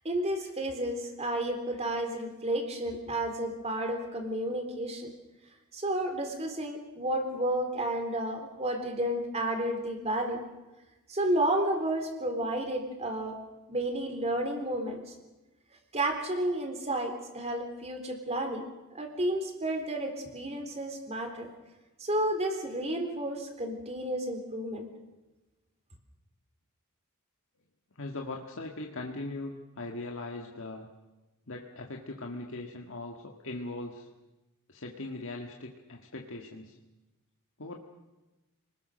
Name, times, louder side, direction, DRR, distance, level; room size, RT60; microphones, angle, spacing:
voice 1, 0.0-5.1 5.7-10.4 11.1-13.4 13.7-15.1 15.9-18.6 18.9-21.5 22.0-24.9, right 1 dB, 30° right, 5 dB, 3.6 m, -31 dB
voice 2, 28.0-30.9 31.5-34.1 34.7-36.8 37.6-37.8, left 2 dB, 60° left, 1 dB, 1.8 m, -40 dB
28.5 x 20.0 x 6.5 m, 1.1 s
head